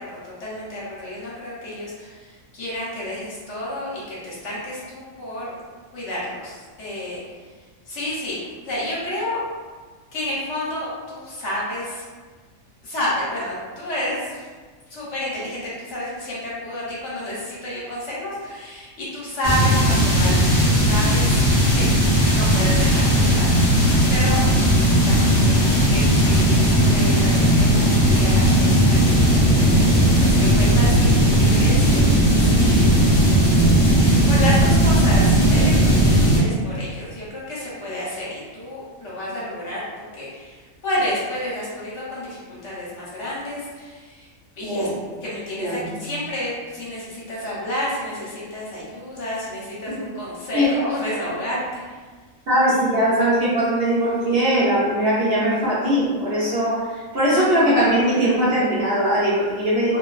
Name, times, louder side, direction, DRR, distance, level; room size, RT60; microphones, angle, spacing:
voice 1, 0.0-5.5 5.9-7.2 7.9-8.4 8.6-9.4 10.1-12.0 12.8-14.4 14.9-21.4 21.7-21.9 22.3-23.7 24.1-24.4 24.9-32.8 33.1-44.3 44.6-44.9 45.2-51.8, left 1 dB, 65° left, -7 dB, 1.0 m, -30 dB
sound 1, 19.4-36.4, equal, 35° left, 0.7 m, -16 dB
voice 2, 44.6-45.0 45.6-45.9 49.9-50.0 50.5-50.7 52.5-60.0, equal, 60° right, -9 dB, 0.7 m, -20 dB
2.5 x 2.2 x 2.3 m, 1.5 s
omnidirectional pair, 1.4 m